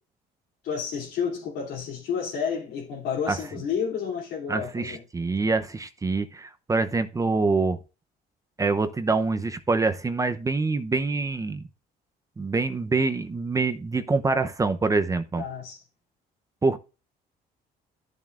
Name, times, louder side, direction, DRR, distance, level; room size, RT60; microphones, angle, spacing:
voice 1, 0.6-5.0 15.4-15.8, left 7 dB, 80° left, 2.8 m, -30 dB
voice 2, 4.5-7.8 8.6-11.6 12.4-15.4 16.6-16.8, right 3 dB, 20° right, 0.7 m, -25 dB
13.0 x 7.3 x 2.5 m
cardioid pair, 110°, 17 cm